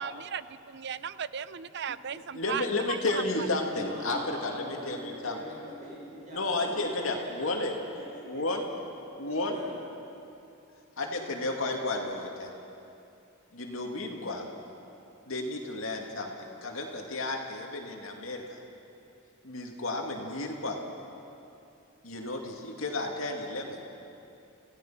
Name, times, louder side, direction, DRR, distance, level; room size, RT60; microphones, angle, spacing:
voice 1, 0.0-3.0, right 7 dB, 55° right, 15 dB, 0.5 m, -36 dB
voice 2, 2.1-5.4 6.3-7.7 8.3-8.6 9.2-9.6 11.0-12.5 13.5-14.5 15.3-16.3 16.6-18.6 19.4-20.8 22.0-23.8, left 2 dB, 75° left, 1 dB, 2.5 m, -32 dB
voice 3, 3.7-7.6 7.9-8.4 9.5-9.7, equal, 35° right, -5 dB, 6.3 m, -43 dB
27.0 x 16.5 x 5.9 m, 2.7 s
head